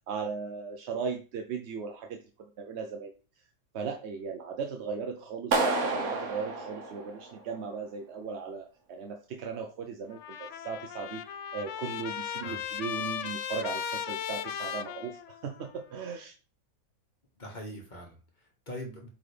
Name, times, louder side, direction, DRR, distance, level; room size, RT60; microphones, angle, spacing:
voice 1, 0.1-2.2 2.6-3.1 3.7-11.2 11.5-16.3, right 5 dB, 55° right, 0.9 m, -37 dB
Clapping, 5.5-7.6, right 3 dB, 80° right, 1.5 m, -30 dB
Trumpet, 10.1-15.7, left 8 dB, 65° left, 0.8 m, -37 dB
voice 2, 17.4-19.1, equal, 30° left, 1.6 m, -42 dB
8.4 x 3.6 x 3.4 m
omnidirectional pair, 1.5 m